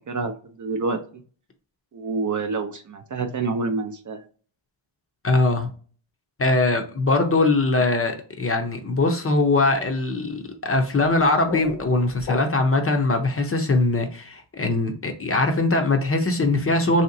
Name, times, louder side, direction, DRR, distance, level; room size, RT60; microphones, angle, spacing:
voice 1, 0.6-1.0 1.9-4.2, right 4 dB, 40° right, 6 dB, 0.5 m, -27 dB
voice 2, 5.2-5.7 6.4-17.0, left 2 dB, 30° left, 4 dB, 0.6 m, -21 dB
sound 1, 11.0-12.9, left 6 dB, 85° left, 0.9 m, -35 dB
3.0 x 2.8 x 2.6 m, 0.40 s
cardioid pair, 85°, 50 cm